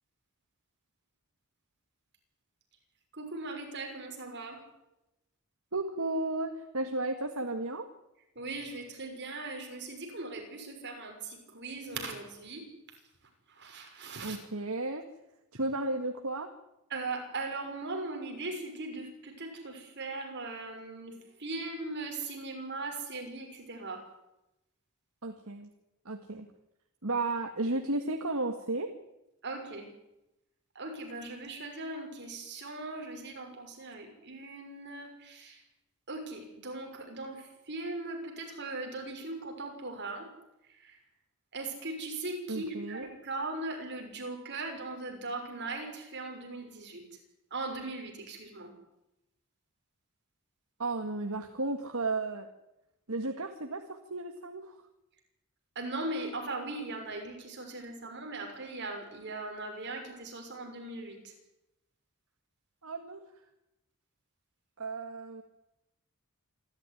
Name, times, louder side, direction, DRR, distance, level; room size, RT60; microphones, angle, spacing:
voice 1, 3.1-4.6 8.3-12.6 13.5-14.4 16.9-24.1 29.4-29.9 30.7-35.6 36.1-40.3 40.7-41.0 41.5-47.0 47.5-48.7 55.7-61.3, right 2 dB, 50° right, 3 dB, 6.3 m, -39 dB
voice 2, 5.7-7.9 14.2-15.1 15.5-16.5 25.2-25.7 26.1-26.5 27.0-28.9 42.5-43.1 50.8-52.5 53.1-54.8 62.8-63.2 64.8-65.4, right 2 dB, 75° right, 5 dB, 2.0 m, -33 dB
27.0 x 13.5 x 10.0 m, 0.90 s
head